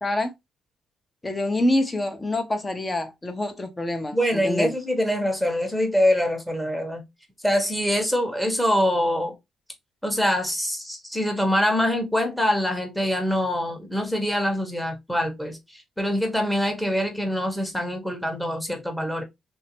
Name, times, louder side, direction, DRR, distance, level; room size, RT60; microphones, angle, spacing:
voice 1, 0.0-0.3 1.2-4.7, left 1 dB, 20° left, 0.9 m, -26 dB
voice 2, 4.1-7.0 7.4-9.3 10.0-19.2, equal, 5° left, 1.1 m, -24 dB
3.2 x 2.8 x 3.0 m
cardioid pair, 90°, 0 cm